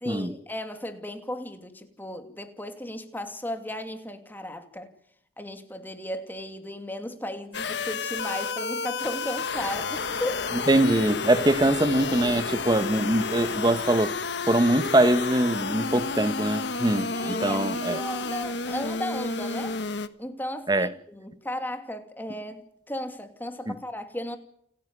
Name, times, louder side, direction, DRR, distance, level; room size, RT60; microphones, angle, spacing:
voice 1, 0.0-4.9 5.4-10.5 17.1-19.8 20.2-24.4, left 1 dB, 10° left, 2.5 m, -35 dB
sound 1, 7.5-20.1, left 4 dB, 70° left, 1.5 m, -31 dB
voice 2, 10.7-14.1 14.5-17.1 17.4-18.0 20.7-20.9 23.7-23.8, right 1 dB, 25° right, 1.1 m, -23 dB
29.5 x 10.5 x 9.6 m
head